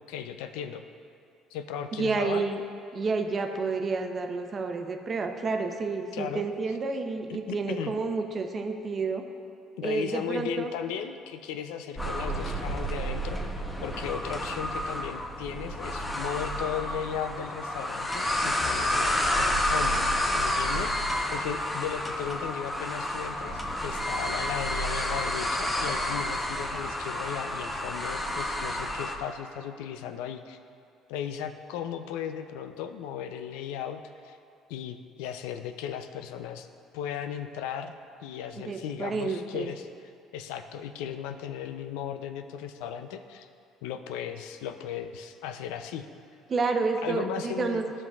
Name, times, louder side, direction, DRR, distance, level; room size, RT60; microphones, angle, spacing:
voice 1, 0.1-0.8 1.5-2.5 6.1-6.5 7.3-7.9 9.8-13.4 13.8-20.1 20.3-30.6 31.1-34.4 34.7-36.7 36.9-37.9 38.2-39.9 40.3-43.5 43.8-46.1 47.0-47.9, left 9 dB, 85° left, 8 dB, 0.4 m, -36 dB
voice 2, 2.0-2.6 2.9-9.2 9.8-10.7 38.6-39.7 46.5-47.8, right 4 dB, 40° right, 5 dB, 0.7 m, -30 dB
sound 1, 12.0-29.2, left 1 dB, 20° left, 0.8 m, -30 dB
14.0 x 5.4 x 2.4 m, 2.5 s
supercardioid pair, 85°, 0 cm